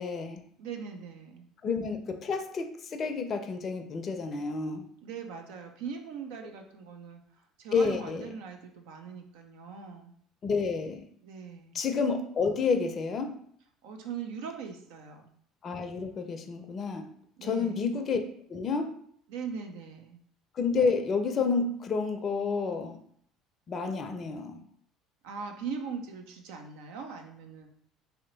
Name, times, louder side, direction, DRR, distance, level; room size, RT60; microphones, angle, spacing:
voice 1, 0.0-0.4 1.6-4.9 7.7-8.3 10.4-11.1 11.7-13.3 15.6-17.1 17.4-18.2 18.5-18.9 20.6-23.0 23.7-24.6, left 4 dB, 40° left, 6 dB, 0.5 m, -30 dB
voice 2, 0.6-1.5 5.0-7.2 7.6-10.1 11.2-11.8 13.8-15.3 17.4-17.9 19.3-20.2 25.2-27.7, right 6 dB, 75° right, 4 dB, 0.5 m, -40 dB
3.2 x 2.8 x 3.9 m, 0.63 s
hypercardioid pair, 70°, 0 cm